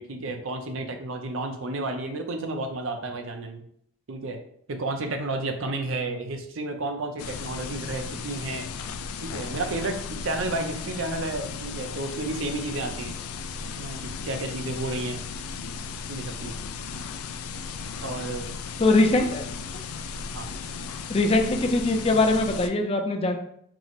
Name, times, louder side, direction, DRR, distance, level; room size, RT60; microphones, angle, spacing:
voice 1, 0.0-3.6 4.1-4.4 4.7-8.7 9.2-13.2 13.8-15.3 16.1-16.5 18.0-18.5 20.3-20.5, right 2 dB, 65° right, 6 dB, 0.5 m, -31 dB
sound 1, 7.2-22.7, left 5 dB, 85° left, 0.4 m, -36 dB
voice 2, 18.8-19.5 19.7-19.8 21.1-23.4, left 2 dB, 25° left, 4 dB, 0.4 m, -22 dB
4.6 x 2.1 x 4.0 m, 0.68 s
head